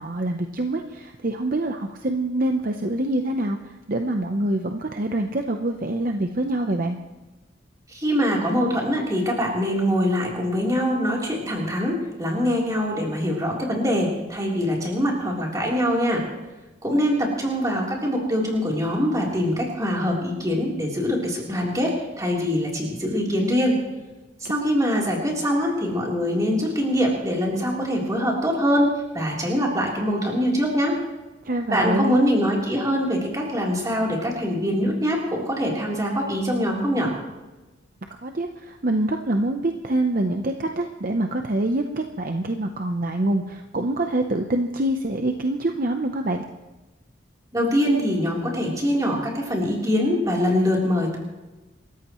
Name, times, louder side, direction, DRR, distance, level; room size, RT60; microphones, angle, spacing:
voice 1, 0.0-3.6 3.9-7.0 31.4-32.2 38.2-46.4, right 1 dB, 45° right, 5 dB, 0.8 m, -25 dB
voice 2, 7.9-16.2 16.8-23.8 24.4-28.9 29.1-31.0 31.7-37.1 47.5-51.2, equal, 20° right, -2 dB, 3.6 m, -23 dB
27.5 x 14.0 x 3.1 m, 1.2 s
head